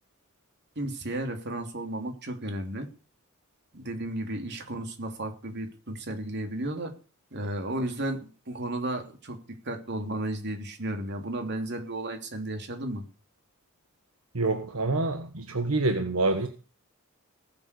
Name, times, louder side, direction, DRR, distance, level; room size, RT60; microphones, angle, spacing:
voice 1, 0.7-2.9 3.7-6.9 7.3-13.0, right 1 dB, 55° right, 5 dB, 3.2 m, -33 dB
voice 2, 14.3-16.5, right 2 dB, 75° right, 6 dB, 1.5 m, -26 dB
19.0 x 7.7 x 6.8 m, 0.36 s
head